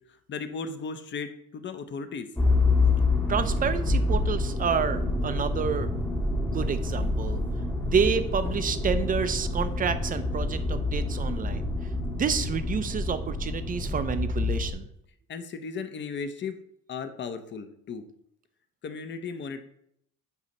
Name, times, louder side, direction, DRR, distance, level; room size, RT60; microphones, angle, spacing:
voice 1, 0.3-2.3 15.3-16.6 16.9-18.0 18.8-19.6, left 5 dB, 35° left, 9 dB, 0.6 m, -35 dB
Motor vehicle (road), 2.4-14.7, left 2 dB, 5° left, 0.8 m, -27 dB
voice 2, 3.3-5.9 6.5-7.4 7.8-11.7 12.1-14.9, right 6 dB, 25° right, 11 dB, 0.4 m, -29 dB
8.1 x 2.8 x 5.2 m, 0.72 s
cardioid pair, 140°, 34 cm